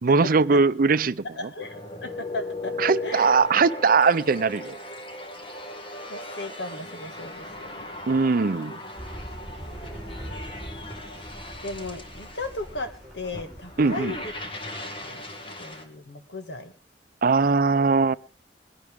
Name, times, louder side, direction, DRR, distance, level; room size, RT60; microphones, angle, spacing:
voice 1, 0.0-1.2 2.8-4.8 8.1-8.7 13.8-14.1 17.2-18.2, right 4 dB, 55° right, 15 dB, 0.6 m, -20 dB
voice 2, 1.3-3.4 6.1-7.9 9.7-10.5 11.6-14.3 15.0-15.2 15.6-16.7, left 2 dB, 75° left, 7 dB, 2.0 m, -36 dB
sound 1, 1.6-15.8, left 2 dB, 30° left, 1.9 m, -38 dB
sound 2, 9.0-14.3, right 1 dB, 5° left, 4.2 m, -42 dB
21.5 x 11.0 x 3.6 m, 0.36 s
head